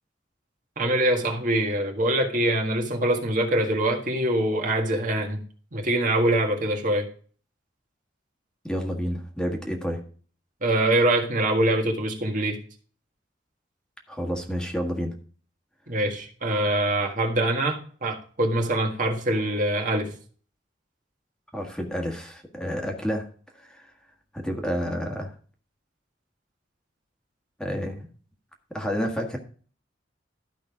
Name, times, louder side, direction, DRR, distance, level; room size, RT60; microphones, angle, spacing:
voice 1, 0.8-5.4 5.7-7.1 10.6-12.6 15.9-20.1, right 1 dB, 45° right, 2 dB, 1.8 m, -24 dB
voice 2, 8.6-10.0 14.1-15.1 21.5-23.3 23.5-23.9 24.3-25.3 27.6-28.1 28.7-29.4, equal, 5° left, 2 dB, 1.6 m, -29 dB
13.0 x 5.3 x 5.0 m, 0.43 s
head